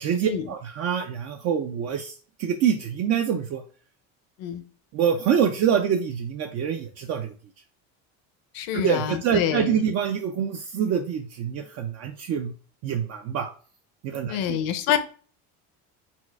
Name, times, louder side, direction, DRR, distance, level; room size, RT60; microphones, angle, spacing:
voice 1, 0.0-3.6 4.9-7.3 8.7-12.5 12.8-13.5 14.0-14.6, right 8 dB, 45° right, 5 dB, 0.5 m, -25 dB
voice 2, 8.5-9.8 14.3-15.0, left 10 dB, 65° left, 10 dB, 0.7 m, -26 dB
4.3 x 2.3 x 4.5 m, 0.40 s
cardioid pair, 160°, 36 cm